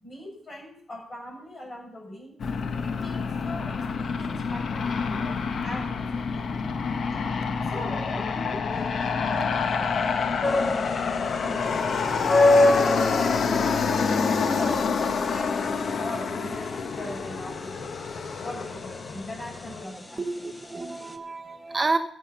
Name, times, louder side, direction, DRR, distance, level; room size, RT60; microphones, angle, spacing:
voice 1, 0.0-2.4 2.8-6.6 7.7-9.7 10.2-14.1 14.5-17.9 18.4-20.4 21.4-21.5, left 1 dB, 35° left, -1 dB, 6.5 m, -41 dB
Aircraft, 2.4-19.8, left 5 dB, 60° left, 1.1 m, -28 dB
sound 1, 10.4-21.1, left 2 dB, 15° left, 1.2 m, -26 dB
voice 2, 20.2-22.0, right 3 dB, 25° right, 7 dB, 0.7 m, -29 dB
14.5 x 6.6 x 7.0 m, 0.65 s
cardioid pair, 105°, 0 cm